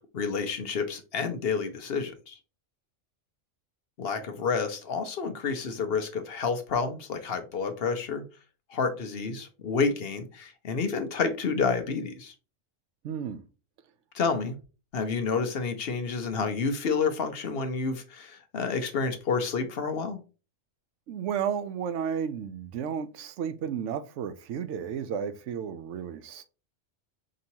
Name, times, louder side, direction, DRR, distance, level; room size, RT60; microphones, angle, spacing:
voice 1, 0.1-2.4 4.0-8.2 8.7-12.3 14.1-14.6 14.9-20.2, left 5 dB, 60° left, 0.9 m, -29 dB
voice 2, 13.0-13.5 21.1-26.4, right 7 dB, 80° right, 0.9 m, -33 dB
5.2 x 2.8 x 2.7 m
omnidirectional pair, 1.2 m